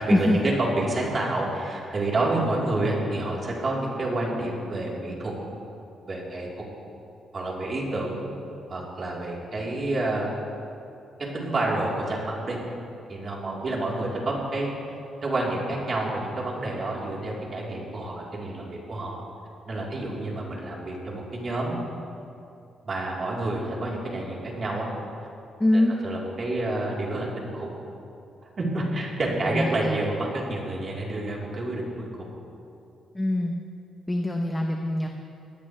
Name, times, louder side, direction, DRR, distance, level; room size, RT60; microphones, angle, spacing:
voice 1, 0.0-5.3 6.1-6.6 7.3-8.3 8.7-10.3 11.3-12.6 13.1-14.7 15.2-19.2 19.7-21.8 22.8-24.9 25.7-27.7 28.6-32.3, right 2 dB, 35° right, -4 dB, 3.8 m, -29 dB
voice 2, 25.6-25.9 29.4-30.0 33.1-33.5 34.1-35.1, left 1 dB, 10° left, 2 dB, 1.0 m, -23 dB
22.0 x 18.0 x 3.4 m, 2.6 s
cardioid pair, 140°, 0 cm